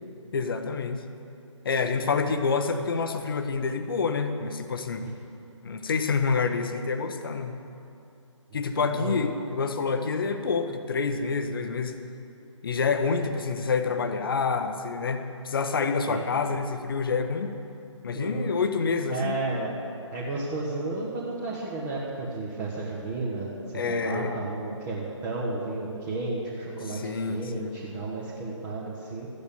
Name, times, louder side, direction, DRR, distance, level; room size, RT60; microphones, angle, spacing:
voice 1, 0.3-1.0 1.6-5.0 5.6-7.6 8.5-12.0 12.6-17.5 18.0-19.4 23.7-24.3 26.8-27.7, left 5 dB, 45° left, 7 dB, 1.0 m, -27 dB
voice 2, 18.1-18.5 19.1-19.7 20.1-29.3, right 2 dB, 20° right, -6 dB, 1.5 m, -32 dB
14.5 x 8.6 x 7.0 m, 2.7 s
figure-of-eight pair, 140°, 16 cm